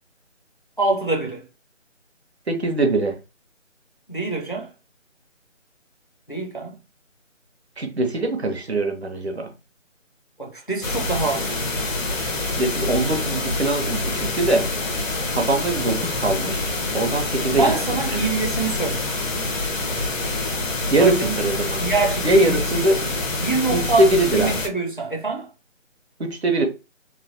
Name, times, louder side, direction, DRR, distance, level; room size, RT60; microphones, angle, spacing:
voice 1, 0.8-1.4 4.1-4.7 6.3-6.8 10.4-11.6 17.5-19.1 21.0-21.3 21.8-22.8 23.4-24.1 24.4-25.5, right 3 dB, 40° left, 0.4 m, -25 dB
voice 2, 2.5-3.2 7.8-9.5 12.4-14.7 15.3-18.3 20.9-21.8 22.2-23.0 23.7-24.6 26.2-26.7, right 2 dB, 55° right, 0.7 m, -22 dB
sound 1, 10.8-24.7, left 2 dB, 80° left, 0.9 m, -26 dB
3.1 x 2.0 x 2.5 m
figure-of-eight pair, 180°, 39 cm